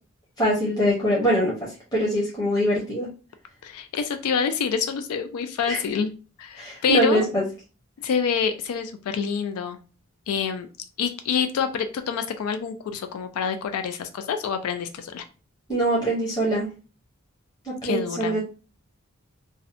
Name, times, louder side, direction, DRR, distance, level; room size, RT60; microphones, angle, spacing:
voice 1, 0.4-3.1 5.7-5.8 6.6-7.4 15.7-16.7 17.6-18.4, equal, 20° left, -7 dB, 0.7 m, -23 dB
voice 2, 3.6-6.1 6.4-7.3 8.0-9.8 10.3-10.7 11.0-15.2 17.8-18.4, left 6 dB, 90° left, 10 dB, 0.3 m, -27 dB
2.5 x 2.1 x 2.4 m, 0.34 s
head